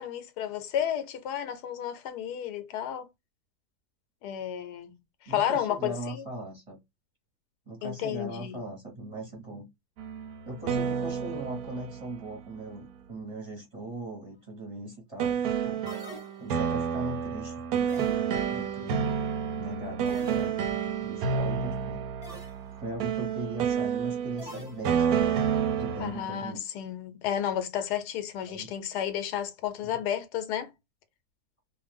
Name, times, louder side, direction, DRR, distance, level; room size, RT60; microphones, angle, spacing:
voice 1, 0.0-3.1 4.2-6.2 7.8-8.7 20.4-20.5 26.0-30.7, left 10 dB, 85° left, 1.1 m, -32 dB
voice 2, 5.3-6.8 7.7-9.7 10.4-15.8 16.4-19.1 19.5-22.0 22.7-26.6 28.5-28.7 29.8-29.9, right 1 dB, 25° right, 0.9 m, -39 dB
sound 1, 10.0-12.9 15.2-26.3, right 7 dB, 75° right, 1.0 m, -30 dB
sound 2, 15.9-16.8 17.9-18.6 20.0-20.9 22.2-22.7 24.4-25.3, equal, 15° left, 0.9 m, -45 dB
2.5 x 2.5 x 3.3 m
omnidirectional pair, 1.7 m